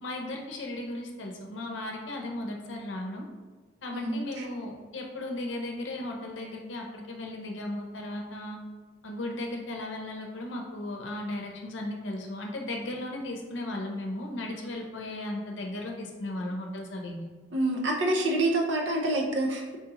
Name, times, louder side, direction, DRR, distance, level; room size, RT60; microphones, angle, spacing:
voice 1, 0.0-3.3 3.8-8.6 9.0-17.3, left 1 dB, 75° left, 1 dB, 0.7 m, -36 dB
voice 2, 17.5-19.8, right 1 dB, 70° right, 0 dB, 0.6 m, -27 dB
4.1 x 3.0 x 3.7 m, 1.4 s
head